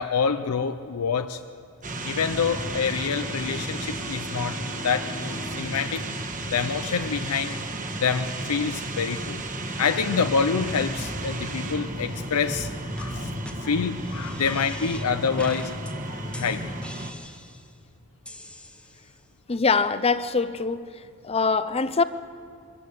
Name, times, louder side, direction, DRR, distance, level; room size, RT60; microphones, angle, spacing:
voice 1, 0.0-1.4 2.0-5.1 5.5-6.1 6.5-7.6 8.0-9.4 9.8-12.7 13.0-13.3 13.6-15.8 16.1-16.7, left 6 dB, 90° left, 9 dB, 0.6 m, -27 dB
sound 1, 1.8-17.1, right 1 dB, 35° right, 1.4 m, -33 dB
Bowed string instrument, 2.0-7.6, left 4 dB, 65° left, 0.9 m, -43 dB
sound 2, 12.5-12.7 13.0-13.1 13.4-13.5 14.0-15.1 15.4-15.9 16.3-17.7 18.3-19.2, left 1 dB, 5° left, 1.1 m, -42 dB
voice 2, 19.5-20.9 21.2-22.0, left 4 dB, 25° left, 14 dB, 0.6 m, -23 dB
24.0 x 14.0 x 8.3 m, 2.3 s
head